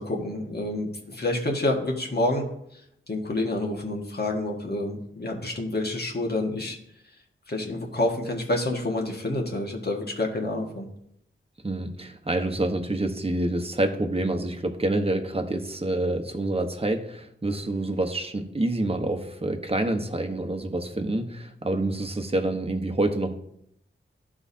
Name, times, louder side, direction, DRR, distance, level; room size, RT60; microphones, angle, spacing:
voice 1, 0.0-2.5 3.1-6.8 7.5-10.9, left 2 dB, 50° left, 1 dB, 1.7 m, -28 dB
voice 2, 11.6-23.4, right 2 dB, 30° right, 6 dB, 1.1 m, -27 dB
14.0 x 4.8 x 2.8 m, 0.76 s
wide cardioid pair, 70°, 21 cm